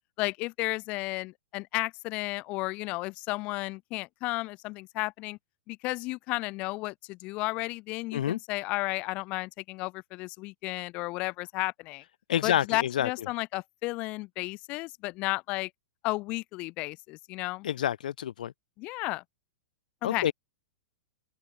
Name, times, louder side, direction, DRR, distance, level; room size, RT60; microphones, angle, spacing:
voice 1, 0.2-5.4 5.7-12.0 12.4-15.7 16.0-17.7 18.8-19.2 20.0-20.3, left 22 dB, 25° left, 4.7 m, -33 dB
voice 2, 12.3-13.1 17.6-18.5 20.0-20.3, left 10 dB, 70° left, 1.1 m, -28 dB
open air
supercardioid pair, 170°, 5 cm